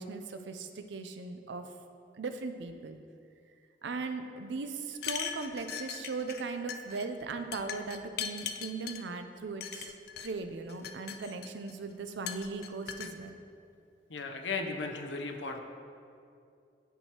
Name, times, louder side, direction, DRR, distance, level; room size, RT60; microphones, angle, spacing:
voice 1, 0.0-1.7 2.1-3.0 3.8-9.9 10.2-13.3, right 4 dB, 80° right, 8 dB, 0.5 m, -38 dB
sound 1, 4.9-6.4 6.7-7.1 7.5-9.0 9.6-10.3 10.7-11.7 12.3-13.1, left 8 dB, 60° left, 0.4 m, -39 dB
voice 2, 14.1-15.6, left 4 dB, 85° left, 4 dB, 0.7 m, -36 dB
11.0 x 4.6 x 2.9 m, 2.4 s
head